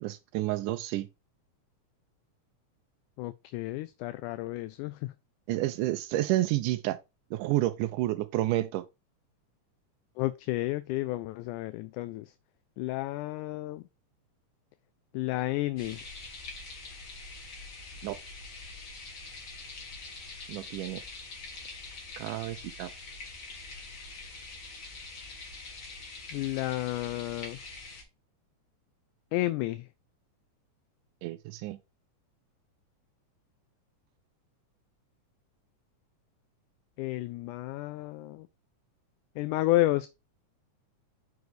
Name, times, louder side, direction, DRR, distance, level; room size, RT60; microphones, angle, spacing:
voice 1, 0.0-1.1 5.5-7.0 7.3-8.9 18.0-18.2 20.5-21.0 22.2-22.9 31.2-31.8, right 16 dB, 85° right, 2.1 m, -30 dB
voice 2, 3.2-5.1 10.2-12.4 12.8-13.9 15.1-16.1 26.3-27.6 29.3-29.9 37.0-38.5 39.4-40.1, left 17 dB, 85° left, 2.0 m, -31 dB
sound 1, 15.8-28.0, left 3 dB, 45° left, 2.7 m, -44 dB
6.2 x 4.7 x 4.7 m
omnidirectional pair, 3.6 m